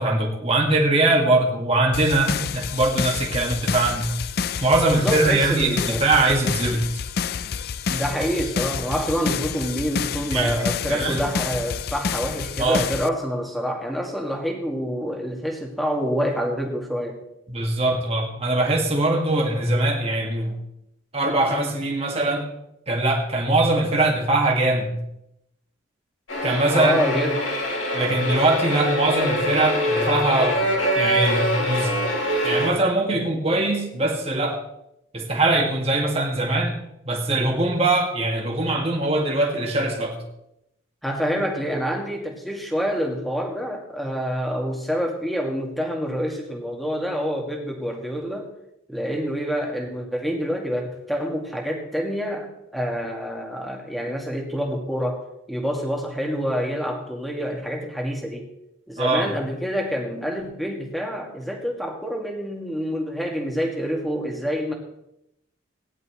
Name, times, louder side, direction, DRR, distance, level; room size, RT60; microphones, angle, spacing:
voice 1, 0.0-4.1 4.6-6.9 10.3-10.6 10.9-11.2 12.6-12.8 17.5-20.6 21.1-22.5 22.9-25.0 26.4-27.0 27.9-30.6 31.0-32.1 32.4-34.6 35.1-36.8 37.1-40.2 59.0-59.3, right 2 dB, 30° right, -1 dB, 2.0 m, -22 dB
sound 1, 1.9-13.1, left 6 dB, 50° left, 0.4 m, -29 dB
voice 2, 4.9-6.1 7.9-17.2 26.7-27.5 41.0-48.5 48.9-55.2 55.5-58.5 58.9-64.7, equal, ahead, 0 dB, 2.0 m, -27 dB
sound 2, 26.3-32.7, equal, 85° left, 3.7 m, -24 dB
18.0 x 10.5 x 3.2 m, 0.83 s
head